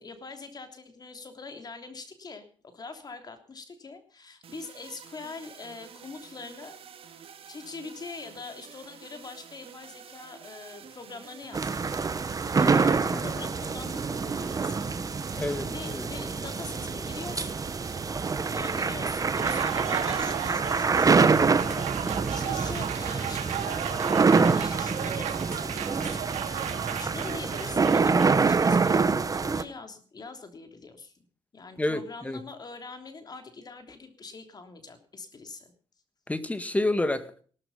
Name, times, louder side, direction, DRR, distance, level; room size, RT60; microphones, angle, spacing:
voice 1, 0.0-6.8 7.5-12.0 12.5-17.6 18.5-31.3 31.5-35.7, left 4 dB, 35° left, 8 dB, 3.2 m, -43 dB
sound 1, 4.4-20.5, right 8 dB, 60° right, 2.7 m, -50 dB
sound 2, 11.5-29.6, right 4 dB, 30° right, 1.3 m, -26 dB
voice 2, 15.4-16.0 31.8-32.4 36.3-37.4, left 2 dB, 15° left, 12 dB, 1.8 m, -29 dB
Applause, 19.1-28.5, right 10 dB, 80° right, 2.8 m, -35 dB
17.5 x 13.0 x 5.5 m, 0.43 s
cardioid pair, 90°, 11 cm